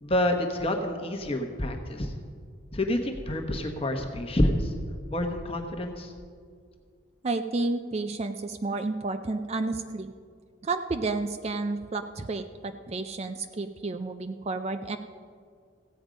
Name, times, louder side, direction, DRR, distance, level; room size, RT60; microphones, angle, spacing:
voice 1, 0.0-2.1 2.7-4.7 5.1-6.1, left 1 dB, 25° left, 3 dB, 1.1 m, -28 dB
voice 2, 7.2-10.1 10.6-15.0, right 3 dB, 30° right, 7 dB, 0.4 m, -31 dB
15.5 x 8.8 x 5.1 m, 2.1 s
head